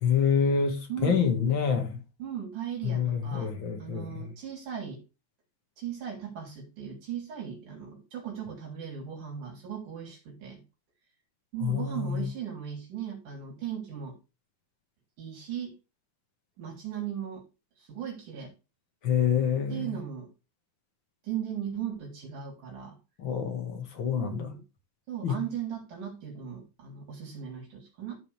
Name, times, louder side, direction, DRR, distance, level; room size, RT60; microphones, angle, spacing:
voice 1, 0.0-2.0 2.8-4.3 11.6-12.3 19.0-19.9 23.2-24.5 25.2-25.4, left 7 dB, 45° left, 2.2 m, -27 dB
voice 2, 0.9-1.2 2.2-3.5 3.8-5.0 5.8-10.6 11.5-14.1 15.2-15.7 16.6-17.4 17.8-18.5 19.7-20.3 21.2-23.0 24.1-24.6 25.1-28.2, right 9 dB, 85° right, 4.8 m, -37 dB
14.5 x 5.4 x 3.5 m
omnidirectional pair, 3.5 m